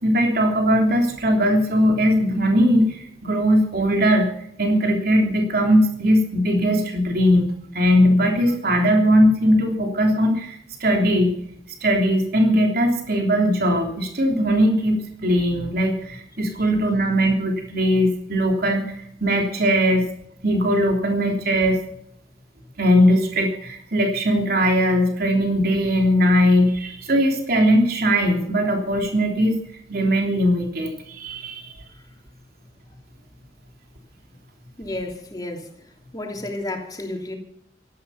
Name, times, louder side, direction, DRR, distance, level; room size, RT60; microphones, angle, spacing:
voice 1, 0.0-4.3 4.6-11.4 11.8-20.1 20.4-21.8 22.8-29.6 29.9-31.7, equal, 60° right, 3.3 m, -19 dB
voice 2, 34.8-35.7 36.1-37.3, left 1 dB, 20° left, 3.0 m, -31 dB
17.5 x 14.0 x 5.8 m
head